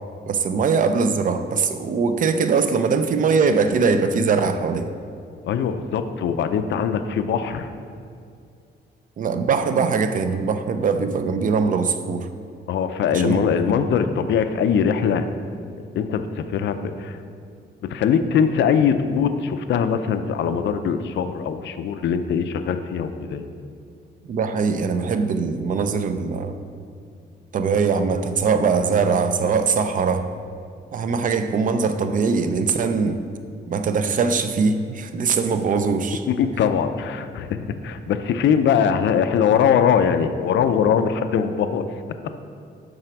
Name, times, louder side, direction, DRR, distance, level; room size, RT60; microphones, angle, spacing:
voice 1, 0.3-4.9 9.2-12.3 13.1-13.4 24.3-26.6 27.5-30.3 30.9-33.2 33.7-36.2, right 5 dB, 45° right, 9 dB, 0.5 m, -21 dB
voice 2, 5.4-7.7 12.7-15.3 16.0-17.2 17.8-23.5 36.3-41.9, left 7 dB, 75° left, 9 dB, 0.5 m, -21 dB
7.7 x 4.9 x 5.8 m, 2.4 s
wide cardioid pair, 165°, 19 cm